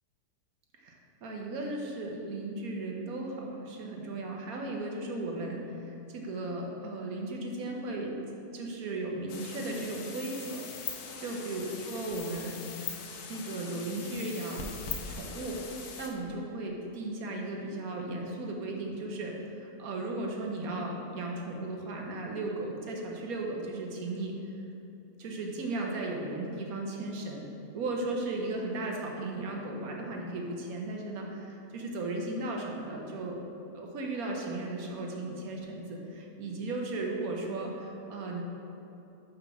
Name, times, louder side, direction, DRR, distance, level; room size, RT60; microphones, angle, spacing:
voice 1, 0.8-8.1 8.5-10.7 11.2-12.6 13.3-14.7 15.1-15.6 16.0-24.5 25.2-27.5 27.7-33.4 33.7-38.4, right 2 dB, 65° right, 0 dB, 1.4 m, -36 dB
sound 1, 9.3-16.1, left 6 dB, 70° left, 1.2 m, -41 dB
6.1 x 5.2 x 5.7 m, 3.0 s
omnidirectional pair, 1.8 m